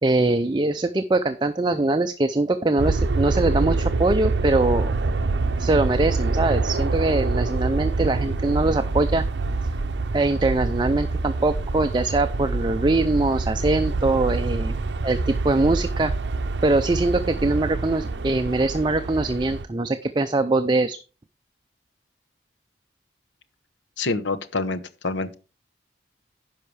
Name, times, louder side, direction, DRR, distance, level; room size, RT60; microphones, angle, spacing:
voice 1, 0.0-4.9 5.6-9.2 10.1-14.8 15.0-16.1 16.6-21.0, right 2 dB, 25° right, 0.5 m, -22 dB
sound 1, 2.8-19.6, right 3 dB, 70° right, 0.6 m, -26 dB
voice 2, 24.0-25.3, left 3 dB, 85° left, 0.9 m, -27 dB
10.5 x 5.7 x 4.7 m
head